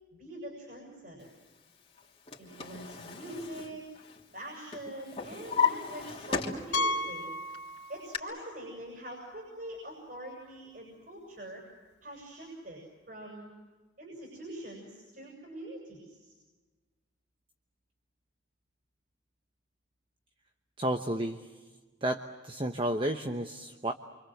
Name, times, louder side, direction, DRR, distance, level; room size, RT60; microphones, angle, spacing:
voice 1, 0.2-1.3 2.4-3.8 4.3-7.3 7.9-11.6 12.0-13.5 14.0-16.3, right 1 dB, 50° right, 0 dB, 7.7 m, -44 dB
Drawer open or close, 2.0-4.4 4.7-7.1 7.5-8.2, left 6 dB, 30° left, 3.1 m, -34 dB
Piano, 6.7-8.3 8.6-8.8 9.3-9.4 9.7-9.8 11.9-12.0, left 1 dB, 65° left, 0.9 m, -33 dB
voice 2, 20.8-21.5 22.0-23.9, right 1 dB, 30° right, 6 dB, 1.1 m, -32 dB
28.5 x 26.0 x 7.9 m, 1.3 s
head